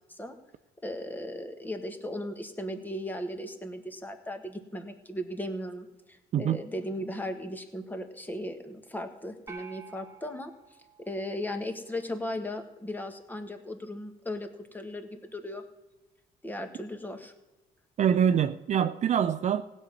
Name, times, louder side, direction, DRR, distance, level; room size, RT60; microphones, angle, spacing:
voice 1, 0.8-10.5 11.0-15.6 16.4-17.3, left 1 dB, 10° left, 1.6 m, -37 dB
sound 1, 9.5-12.0, right 5 dB, 20° right, 2.1 m, -50 dB
voice 2, 18.0-19.6, right 8 dB, 45° right, 0.5 m, -25 dB
16.0 x 5.5 x 9.2 m
cardioid pair, 110°, 17 cm